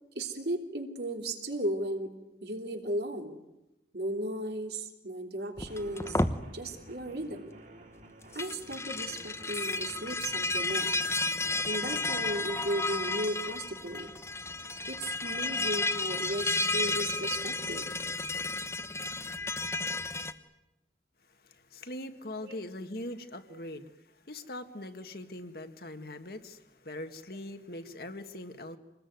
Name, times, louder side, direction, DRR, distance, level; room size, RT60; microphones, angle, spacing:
voice 1, 0.1-2.1 2.4-3.4 3.9-6.2 6.5-7.5 8.3-10.9 11.6-14.1 14.9-17.9 22.4-22.5 23.5-23.6, right 1 dB, 65° right, 3.2 m, -35 dB
sound 1, 5.6-6.4 8.2-20.3, left 2 dB, 15° left, 1.0 m, -32 dB
sound 2, 5.7-13.3, right 1 dB, 45° right, 4.3 m, -52 dB
voice 2, 21.4-28.8, left 1 dB, 60° left, 2.0 m, -42 dB
27.5 x 20.5 x 9.6 m
head